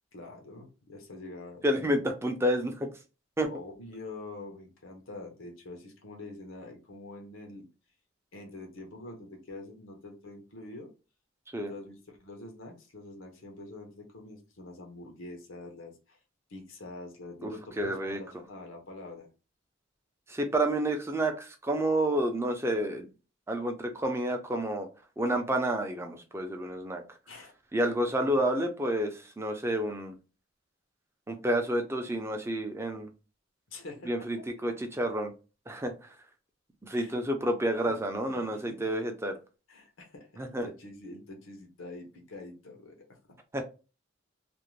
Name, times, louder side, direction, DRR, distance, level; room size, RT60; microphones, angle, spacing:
voice 1, 0.1-2.0 3.5-7.7 8.3-10.9 11.7-16.2 16.5-19.3 27.3-27.5 33.7-34.3 36.9-37.2 37.9-38.8 39.7-43.2, left 2 dB, 90° left, 0.7 m, -45 dB
voice 2, 1.6-2.9 3.4-3.5 11.5-11.7 17.4-17.5 17.8-18.2 20.3-23.1 23.5-24.9 25.2-27.0 27.7-30.1 31.3-33.1 34.1-34.4 34.6-35.3 35.7-35.9 36.8-39.4 40.4-40.7 43.5-43.6, right 1 dB, 15° right, 0.4 m, -29 dB
2.5 x 2.1 x 3.0 m
head